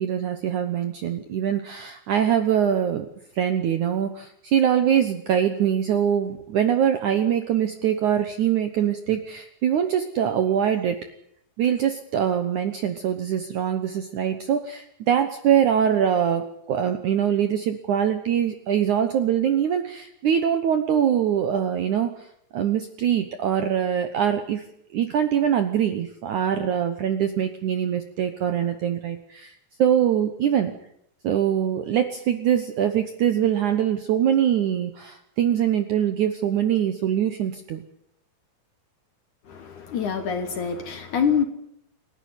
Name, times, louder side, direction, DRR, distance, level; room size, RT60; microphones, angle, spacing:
voice 1, 0.0-3.1 3.4-11.0 11.6-22.3 22.5-24.6 24.9-29.5 29.8-30.7 31.2-37.8, right 9 dB, 70° right, 1.9 m, -23 dB
voice 2, 39.5-41.4, left 7 dB, 60° left, 2.4 m, -25 dB
28.5 x 12.0 x 9.6 m
omnidirectional pair, 4.9 m